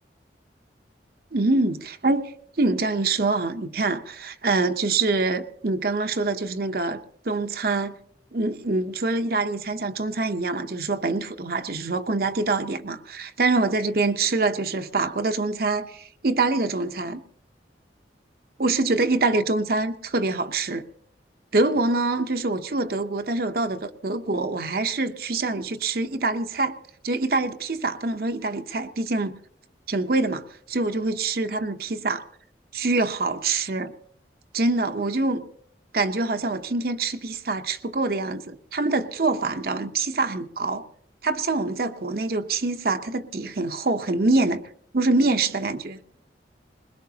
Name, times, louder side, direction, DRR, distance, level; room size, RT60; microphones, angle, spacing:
voice 1, 1.3-2.2 2.6-8.0 8.3-17.2 18.6-20.8 21.5-26.7 27.0-29.3 29.9-32.2 32.7-33.9 34.5-35.4 35.9-40.8 41.2-44.6 44.9-46.0, right 3 dB, 55° right, 0.8 m, -25 dB
22.0 x 21.0 x 2.8 m
head